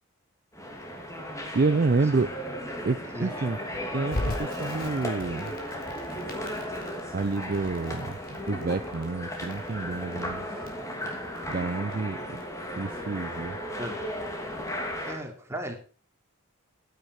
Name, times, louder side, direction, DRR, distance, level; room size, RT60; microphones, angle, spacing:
sound 1, 0.5-15.2, equal, 15° left, 2.8 m, -35 dB
voice 1, 1.5-2.4 2.8-3.6 3.9-5.5 7.1-8.2 8.5-10.5 11.5-12.4 12.8-13.6, right 3 dB, 45° right, 12 dB, 0.5 m, -28 dB
Crackle, 4.1-14.8, left 1 dB, 45° left, 4.3 m, -40 dB
voice 2, 15.0-15.8, equal, 15° right, 2 dB, 2.9 m, -36 dB
15.0 x 9.3 x 4.7 m, 0.39 s
head